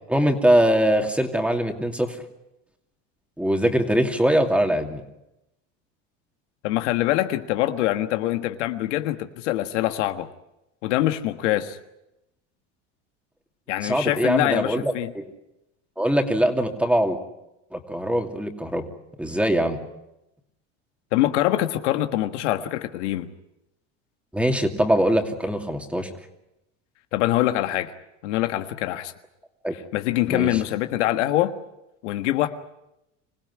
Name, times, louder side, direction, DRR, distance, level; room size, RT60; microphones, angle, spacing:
voice 1, 0.1-2.2 3.4-5.0 13.8-15.3 16.0-17.2 17.7-18.9 19.2-19.8 24.3-26.1 29.6-29.7 30.3-30.5, equal, 5° right, 4 dB, 2.7 m, -22 dB
voice 2, 6.6-10.3 10.8-11.8 13.7-15.1 21.1-23.3 27.1-27.9 28.2-29.1 29.9-31.5 32.0-32.5, left 14 dB, 85° left, 8 dB, 1.6 m, -24 dB
26.0 x 16.5 x 9.8 m, 0.91 s
supercardioid pair, 120°, 35 cm